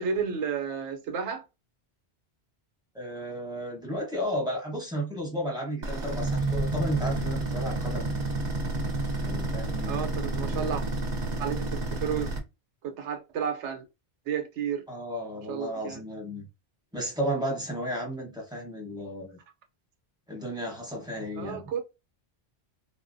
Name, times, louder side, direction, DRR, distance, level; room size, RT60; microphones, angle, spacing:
voice 1, 0.0-1.4 9.9-10.8 11.4-12.3 12.8-13.8 14.3-14.8 15.5-16.0 21.3-21.8, right 7 dB, 85° right, 1.0 m, -32 dB
voice 2, 2.9-8.2 9.2-10.1 14.9-16.5 16.9-19.4 20.3-21.6, equal, 5° right, 0.9 m, -33 dB
sound 1, 5.8-12.4, right 2 dB, 45° right, 0.7 m, -30 dB
3.7 x 2.1 x 2.5 m
omnidirectional pair, 1.1 m